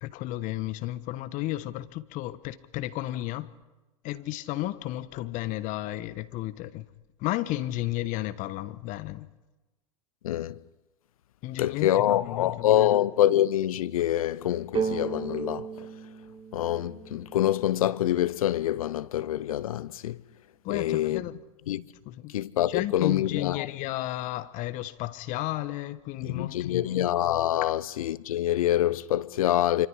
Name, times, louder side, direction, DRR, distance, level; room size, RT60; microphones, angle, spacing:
voice 1, 0.0-3.5 4.0-6.8 7.2-9.3 11.4-13.0 20.6-21.3 22.1-22.3 22.7-27.1 27.6-27.7, left 16 dB, 45° left, 1.2 m, -33 dB
voice 2, 10.2-10.6 11.6-15.9 16.5-20.2 20.7-21.2 21.7-21.8 22.3-23.7 26.2-29.9, left 12 dB, 75° left, 0.7 m, -26 dB
sound 1, 14.7-18.4, right 6 dB, 30° right, 2.5 m, -35 dB
26.5 x 24.5 x 4.9 m
hypercardioid pair, 100°, 18 cm